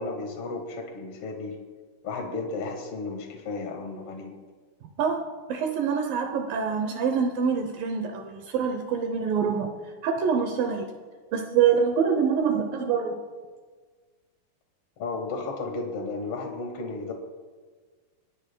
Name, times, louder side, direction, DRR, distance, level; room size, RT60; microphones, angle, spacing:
voice 1, 0.0-1.6 2.0-4.3 15.0-17.1, left 3 dB, 65° left, 3 dB, 1.4 m, -33 dB
voice 2, 5.5-9.7 10.0-10.9 11.3-13.2, right 6 dB, 75° right, 5 dB, 2.1 m, -25 dB
28.5 x 10.5 x 2.2 m, 1.5 s
omnidirectional pair, 4.9 m